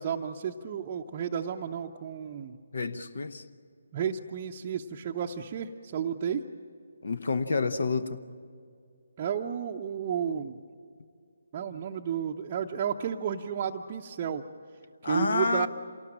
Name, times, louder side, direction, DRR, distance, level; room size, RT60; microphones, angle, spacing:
voice 1, 0.0-2.6 3.9-6.4 9.2-10.6 11.5-14.4 15.0-15.7, right 8 dB, 30° right, 0 dB, 0.7 m, -32 dB
voice 2, 2.7-3.4 7.0-8.2 15.0-15.7, left 4 dB, 55° left, 13 dB, 1.0 m, -29 dB
27.0 x 18.5 x 8.8 m, 2.3 s
figure-of-eight pair, 145°, 0 cm